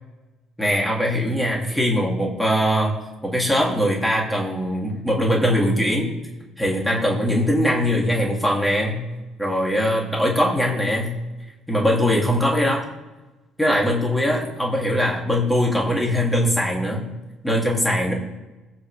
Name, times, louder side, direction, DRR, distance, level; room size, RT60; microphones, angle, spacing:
voice 1, 0.6-2.9 3.2-6.1 6.6-9.0 9.4-11.1 11.7-12.8 13.6-17.0 17.4-18.1, equal, 5° left, -3 dB, 2.9 m, -21 dB
16.5 x 5.8 x 3.5 m, 1.1 s
supercardioid pair, 85°, 0 cm